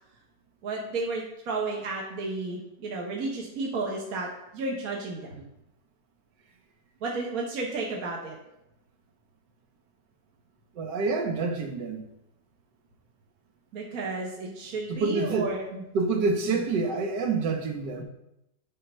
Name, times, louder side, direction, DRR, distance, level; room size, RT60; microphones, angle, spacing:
voice 1, 0.6-4.3 4.5-5.4 7.0-8.4 13.7-15.8 16.4-16.6, right 3 dB, 60° right, 1.6 m, -32 dB
voice 2, 10.7-12.0 14.9-15.5 15.9-18.0, right 4 dB, 80° right, 1.7 m, -27 dB
9.3 x 3.9 x 5.4 m
omnidirectional pair, 1.9 m